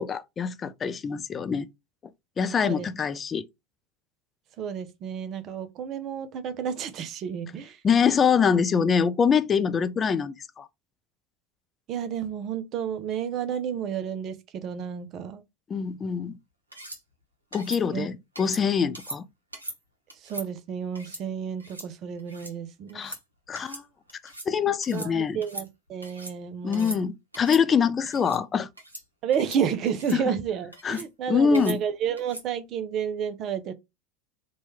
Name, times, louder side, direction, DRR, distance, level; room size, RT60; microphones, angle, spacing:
voice 1, 0.0-1.7 2.4-3.5 7.8-10.7 15.7-16.4 17.5-19.2 22.9-23.1 23.5-23.8 24.5-25.4 26.6-28.7 30.1-30.2 30.8-31.8, left 6 dB, 30° left, 0.4 m, -24 dB
voice 2, 4.6-7.8 11.9-15.4 17.9-18.1 20.2-23.1 24.9-27.0 29.2-33.7, right 8 dB, 45° right, 0.5 m, -31 dB
sound 1, 16.7-17.0 17.5-17.8 18.4-18.6 18.9-19.2 19.5-19.8 20.1-20.5 20.9-21.2 21.6-21.9 22.2-22.5 22.9-23.2 23.5-23.8 24.1-24.5 24.8-25.1 25.4-26.3 26.7-27.0 27.3-27.6 28.1-28.4 28.8-29.0 29.3-29.6 29.9-30.2 30.7-31.1 31.5-31.8 32.2-32.5, right 1 dB, 90° right, 0.7 m, -40 dB
3.1 x 2.3 x 3.0 m
figure-of-eight pair, 75°, 0 cm